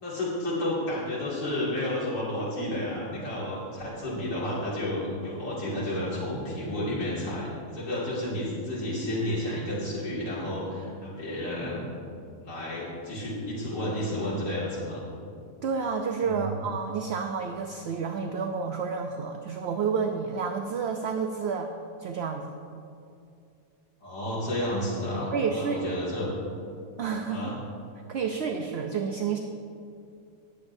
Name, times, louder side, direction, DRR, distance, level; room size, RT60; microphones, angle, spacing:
voice 1, 0.0-11.9 12.4-15.0 16.2-16.6 24.0-26.3 27.3-27.5, left 1 dB, 60° left, -8 dB, 2.8 m, -31 dB
voice 2, 15.6-21.7 22.0-22.5 25.3-25.8 27.0-27.4 28.1-29.4, right 5 dB, 60° right, 4 dB, 0.7 m, -30 dB
18.0 x 8.5 x 2.7 m, 2.5 s
omnidirectional pair, 1.6 m